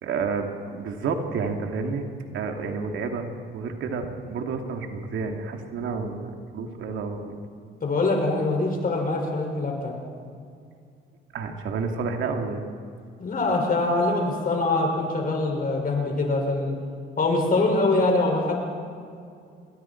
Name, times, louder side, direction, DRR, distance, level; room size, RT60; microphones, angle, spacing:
voice 1, 0.0-2.1 2.3-3.3 3.5-7.4 11.3-12.6, right 4 dB, 80° right, 4 dB, 2.4 m, -30 dB
voice 2, 7.8-9.9 13.2-16.8 17.2-18.5, left 2 dB, 45° left, 1 dB, 5.9 m, -23 dB
26.5 x 22.0 x 4.5 m, 2.4 s
cardioid pair, 90°, 20 cm